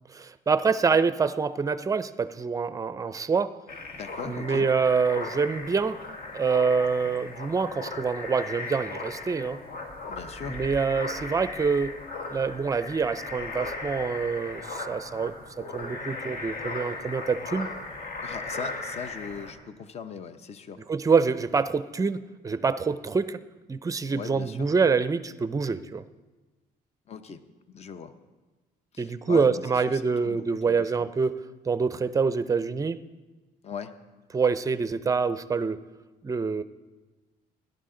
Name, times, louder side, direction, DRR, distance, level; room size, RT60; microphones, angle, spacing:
voice 1, 0.2-3.6 4.3-6.0 6.3-9.6 10.5-12.0 12.3-17.7 20.9-23.4 23.7-26.0 29.0-33.0 34.3-35.8 36.2-36.6, right 5 dB, 20° right, 14 dB, 0.5 m, -26 dB
sound 1, 3.7-19.5, left 3 dB, 60° left, 1.8 m, -37 dB
voice 2, 3.9-4.7 10.1-10.6 18.2-20.8 24.1-24.7 27.1-27.4 27.7-28.1 28.9-31.1 33.6-33.9, left 6 dB, 40° left, 10 dB, 0.8 m, -39 dB
17.0 x 11.5 x 3.8 m, 1.3 s
cardioid pair, 110°, 17 cm